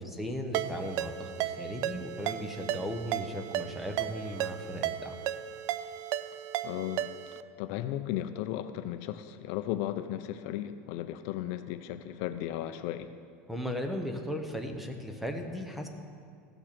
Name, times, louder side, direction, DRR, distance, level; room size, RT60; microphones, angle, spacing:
voice 1, 0.0-5.1 13.5-15.9, equal, ahead, 4 dB, 0.9 m, -37 dB
Ringtone, 0.5-7.4, right 12 dB, 50° right, 0.4 m, -35 dB
voice 2, 6.6-7.1 7.6-13.1, left 12 dB, 60° left, 10 dB, 0.5 m, -35 dB
15.0 x 6.1 x 6.8 m, 2.2 s
supercardioid pair, 150°, 7 cm